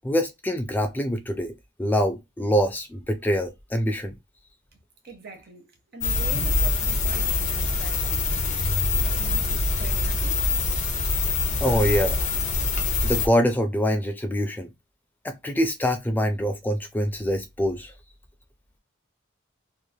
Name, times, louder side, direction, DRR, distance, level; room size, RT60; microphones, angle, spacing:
voice 1, 0.0-1.5 1.8-4.1 11.6-12.3 13.0-14.7 15.2-17.9, equal, 10° left, 0.3 m, -24 dB
voice 2, 5.0-8.4 9.0-10.5, right 3 dB, 55° right, 1.0 m, -43 dB
sound 1, 6.0-13.3, left 3 dB, 40° left, 0.7 m, -24 dB
3.1 x 2.4 x 2.2 m
head